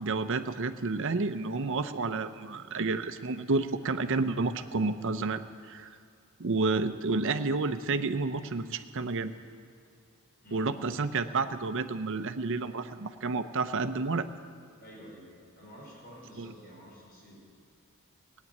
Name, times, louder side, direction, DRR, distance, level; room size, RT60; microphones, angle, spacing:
voice 1, 0.0-5.9 6.4-9.3 10.5-14.3 16.4-16.5, right 3 dB, 60° right, 10 dB, 0.7 m, -30 dB
voice 2, 10.4-10.8 14.8-17.5, equal, 45° left, -5 dB, 5.2 m, -50 dB
17.5 x 8.4 x 9.3 m, 2.2 s
head